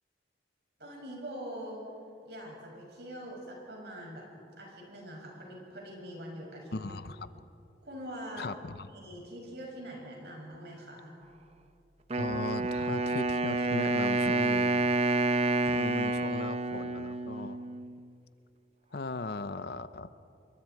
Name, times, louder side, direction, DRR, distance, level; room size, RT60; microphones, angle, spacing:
voice 1, 0.8-1.8 2.2-4.3 4.6-6.8 7.8-8.6 8.9-11.2, equal, 65° right, -1 dB, 7.1 m, -43 dB
voice 2, 6.7-7.3 8.4-8.9 12.1-14.9 15.6-17.6 18.9-20.1, left 3 dB, 60° left, 13 dB, 0.7 m, -38 dB
Wind instrument woodwind instrument, 12.1-18.1, right 2 dB, 35° right, 0.7 m, -29 dB
28.5 x 22.5 x 4.8 m, 2.6 s
head